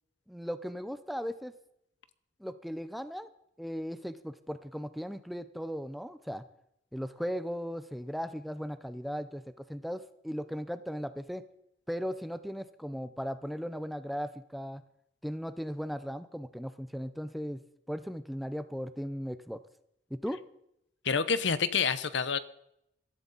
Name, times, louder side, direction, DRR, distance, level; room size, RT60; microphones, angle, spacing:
voice 1, 0.3-1.5 2.4-3.3 3.6-6.4 6.9-11.4 11.9-14.8 15.2-17.6 17.9-19.6 20.1-20.4, equal, ahead, 11 dB, 0.5 m, -37 dB
voice 2, 21.0-22.4, left 6 dB, 70° left, 14 dB, 0.8 m, -28 dB
21.0 x 13.0 x 4.1 m, 0.79 s
head